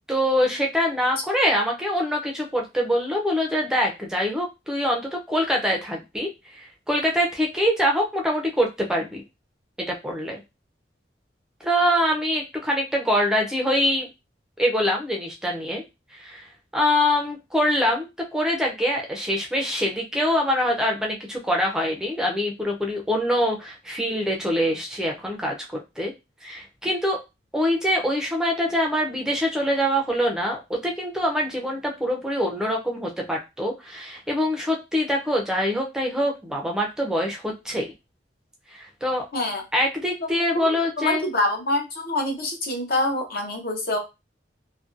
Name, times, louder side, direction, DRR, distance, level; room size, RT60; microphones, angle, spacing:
voice 1, 0.1-9.2 9.9-10.4 11.6-14.1 14.6-15.8 16.1-18.1 18.3-25.6 26.0-26.1 26.4-27.2 27.5-37.9 38.7-39.2 39.7-41.2, equal, 5° right, 0 dB, 0.4 m, -24 dB
voice 2, 40.5-44.0, left 1 dB, 55° left, 2 dB, 0.7 m, -26 dB
2.5 x 2.2 x 2.4 m, 0.24 s
head